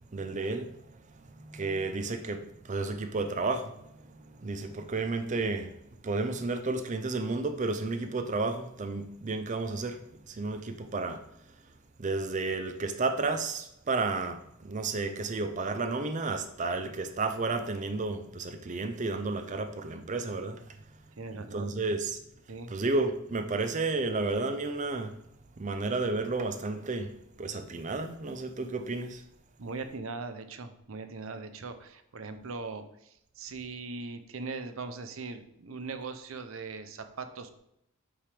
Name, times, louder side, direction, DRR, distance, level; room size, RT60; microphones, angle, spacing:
voice 1, 0.1-5.8 6.0-11.3 12.0-20.7 21.5-22.2 22.7-25.2 25.6-27.1 27.4-29.2, right 3 dB, 40° right, 0.5 m, -32 dB
voice 2, 21.2-21.7 22.5-22.7 29.6-37.6, right 4 dB, 90° right, 0.7 m, -40 dB
8.5 x 3.5 x 4.9 m
head